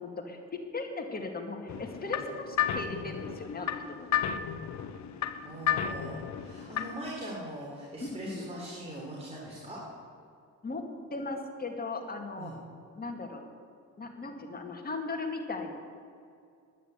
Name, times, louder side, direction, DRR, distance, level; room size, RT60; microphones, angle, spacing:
voice 1, 0.0-3.8 8.0-8.5 10.6-10.9 11.1-12.5 13.0-13.4 14.0-15.7, left 3 dB, 30° left, 3 dB, 2.0 m, -37 dB
sound 1, 1.7-7.1, left 9 dB, 65° left, 0.8 m, -33 dB
voice 2, 5.4-9.8 12.4-12.5, right 1 dB, 20° right, -5 dB, 3.2 m, -41 dB
10.0 x 9.9 x 8.0 m, 2.4 s
cardioid pair, 90°, 30 cm